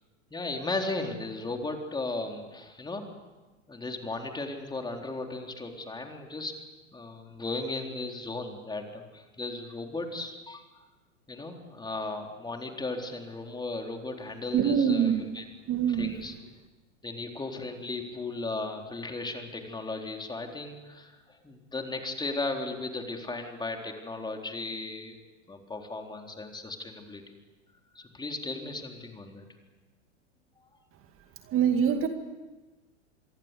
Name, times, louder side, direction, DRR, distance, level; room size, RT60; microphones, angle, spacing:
voice 1, 0.3-3.1 3.7-6.5 6.9-10.7 11.3-15.4 16.0-16.3 17.0-25.2 25.5-27.2 27.9-29.4 30.6-30.7, left 2 dB, 10° left, 3 dB, 3.9 m, -36 dB
voice 2, 14.5-15.2 15.7-16.2 31.4-32.1, right 8 dB, 35° right, 6 dB, 2.2 m, -24 dB
27.0 x 22.5 x 8.4 m, 1.2 s
hypercardioid pair, 95°, 37 cm